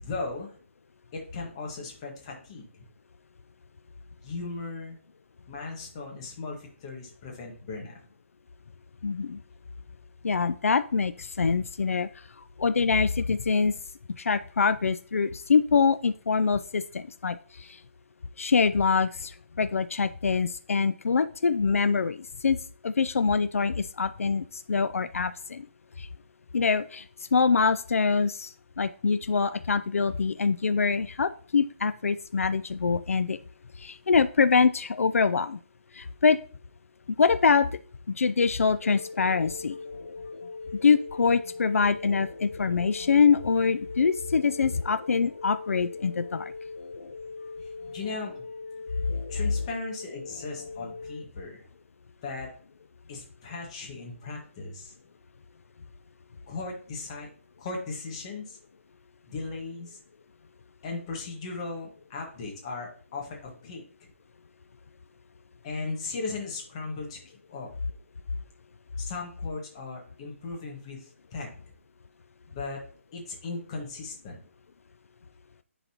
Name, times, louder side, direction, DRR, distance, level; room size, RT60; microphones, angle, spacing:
voice 1, 0.0-0.6 1.1-2.8 4.2-5.0 5.5-8.0 47.6-48.3 49.3-51.7 52.2-52.5 53.1-54.9 56.5-57.3 57.6-58.6 59.3-60.0 60.8-63.8 65.6-67.2 67.5-67.7 69.0-71.5 72.5-72.8 73.1-74.4, left 3 dB, 25° left, 0 dB, 1.5 m, -37 dB
voice 2, 9.0-9.4 10.2-12.1 12.6-13.7 14.2-17.8 18.4-22.6 22.8-25.7 26.0-26.1 26.5-27.1 27.3-33.4 33.8-35.6 35.9-36.4 37.2-37.7 38.1-39.8 40.8-46.5, left 5 dB, 85° left, 13 dB, 0.4 m, -24 dB
sound 1, 38.8-51.2, left 4 dB, 65° left, 1.1 m, -41 dB
9.9 x 3.9 x 2.9 m, 0.43 s
hypercardioid pair, 165°, 7 cm